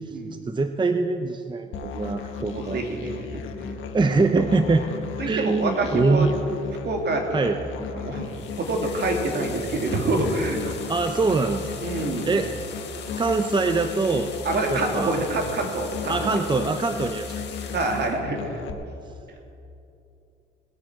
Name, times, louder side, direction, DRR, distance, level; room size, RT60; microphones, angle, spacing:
voice 1, 0.5-2.8 3.9-4.8 5.3-6.4 7.3-7.6 10.9-11.6 12.2-12.5 13.2-14.3 14.7-15.2 16.1-17.3, right 3 dB, 25° right, 7 dB, 0.7 m, -23 dB
Musical instrument, 1.7-18.7, left 6 dB, 80° left, 1.3 m, -36 dB
voice 2, 2.3-3.4 3.9-4.1 4.5-4.6 5.2-6.3 6.8-7.5 7.9-8.3 8.6-10.7 11.8-12.3 14.4-16.3 17.7-18.6, right 2 dB, 55° right, 2 dB, 2.5 m, -26 dB
sound 1, 8.2-18.2, left 7 dB, 60° left, 1.9 m, -41 dB
20.0 x 8.9 x 6.0 m, 2.7 s
cardioid pair, 90°, 20 cm